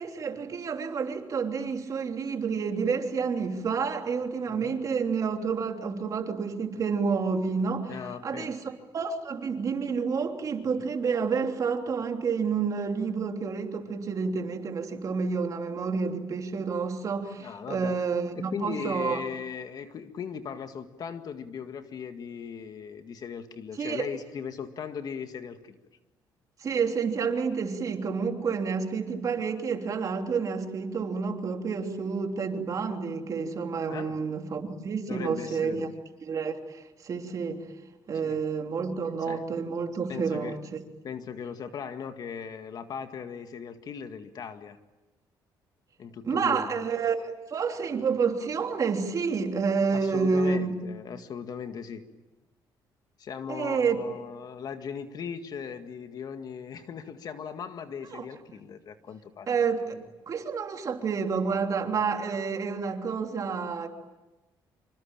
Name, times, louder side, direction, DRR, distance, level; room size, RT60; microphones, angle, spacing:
voice 1, 0.0-7.9 8.2-19.2 23.8-24.1 26.6-35.9 36.2-37.6 38.1-40.8 46.2-50.8 53.5-54.0 58.1-58.2 59.5-63.9, right 5 dB, 45° right, 4 dB, 3.1 m, -29 dB
voice 2, 7.9-8.5 17.4-18.0 18.3-25.8 33.9-34.2 35.1-35.9 38.2-38.4 39.3-39.4 40.1-40.6 41.0-44.8 46.0-46.9 49.9-52.0 53.2-59.5, left 7 dB, 50° left, 8 dB, 2.0 m, -38 dB
26.5 x 25.5 x 8.9 m, 1.1 s
cardioid pair, 120°, 8 cm